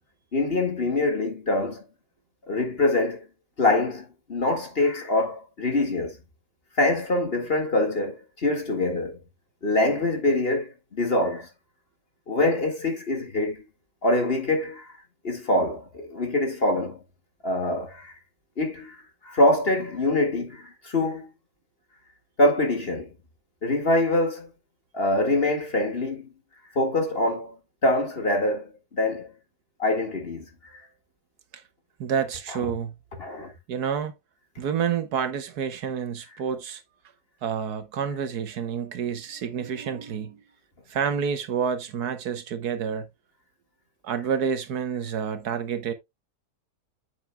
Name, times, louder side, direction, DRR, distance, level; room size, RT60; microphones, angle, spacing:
voice 1, 0.3-1.8 2.5-3.3 3.6-6.2 6.8-9.2 9.6-11.5 12.3-13.6 14.0-14.9 15.2-17.0 17.4-18.1 18.6-21.3 22.4-23.1 23.6-24.5 24.9-26.3 26.7-27.6 27.8-29.3 29.8-30.8 32.5-32.7 33.2-33.5, left 2 dB, 40° left, 2.1 m, -24 dB
voice 2, 32.0-32.9 33.7-34.1 34.6-36.8 37.4-40.4 40.9-43.1 44.0-45.9, right 7 dB, 80° right, 1.6 m, -28 dB
9.2 x 6.9 x 2.2 m
omnidirectional pair, 1.6 m